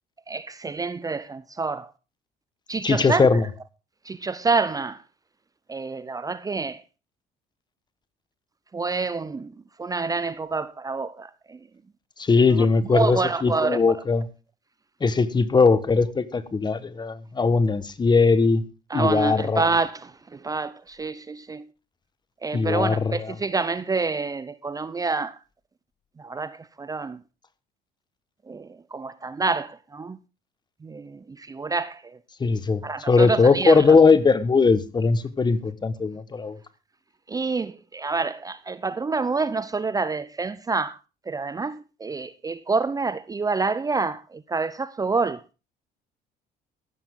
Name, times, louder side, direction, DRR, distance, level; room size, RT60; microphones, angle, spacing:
voice 1, 0.3-1.9 2.7-3.2 4.1-5.0 5.7-6.8 8.7-9.5 9.8-11.3 12.9-13.8 18.9-19.9 20.4-20.7 21.0-21.6 22.4-25.3 26.2-27.2 28.5-28.6 28.9-30.2 30.8-31.0 31.5-32.0 32.8-33.8 37.3-40.9 41.3-44.2 44.5-45.4, right 4 dB, 20° right, 0.7 m, -27 dB
voice 2, 2.8-3.5 12.2-14.3 15.0-18.6 18.9-19.7 22.5-23.4 32.4-36.6, left 4 dB, 25° left, 1.3 m, -20 dB
14.5 x 12.5 x 3.7 m
cardioid pair, 110°, 17 cm